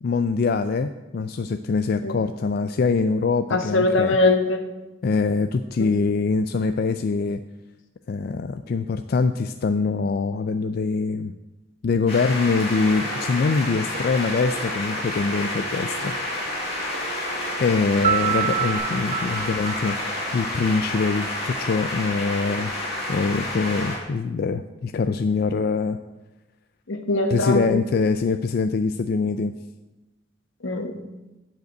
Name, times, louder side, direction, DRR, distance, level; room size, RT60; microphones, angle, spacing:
voice 1, 0.0-4.2 5.0-7.4 8.1-11.3 11.8-16.3 17.6-20.0 20.3-22.7 23.1-26.0 27.3-29.5, left 4 dB, 50° left, 9 dB, 0.3 m, -24 dB
voice 2, 3.5-4.6 19.4-19.5 26.9-27.7 30.6-30.9, left 2 dB, 80° left, 5 dB, 1.3 m, -22 dB
sound 1, 12.1-24.0, left 1 dB, 30° left, 3.9 m, -29 dB
Telephone, 12.8-13.5 13.9-14.7 15.4-16.2 16.6-17.7 18.3-18.8, right 7 dB, 65° right, 1.2 m, -41 dB
Piano, 18.0-20.8, right 10 dB, 40° right, 0.4 m, -27 dB
9.2 x 5.2 x 8.0 m, 1.1 s
head